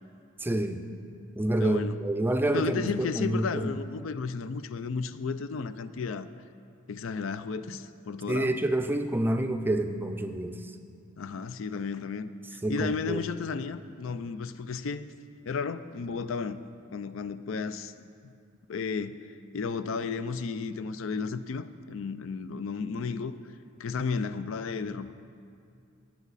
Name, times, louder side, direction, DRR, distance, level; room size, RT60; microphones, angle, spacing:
voice 1, 0.4-0.8 1.4-3.7 8.3-10.6 12.6-13.2, right 1 dB, 10° right, 7 dB, 0.5 m, -28 dB
voice 2, 1.6-2.0 2.5-6.3 6.9-8.5 11.2-15.1 15.5-16.6 16.9-17.9 18.7-19.2 19.5-23.4 23.8-25.1, left 5 dB, 70° left, 13 dB, 0.4 m, -33 dB
18.5 x 7.3 x 4.1 m, 2.4 s
head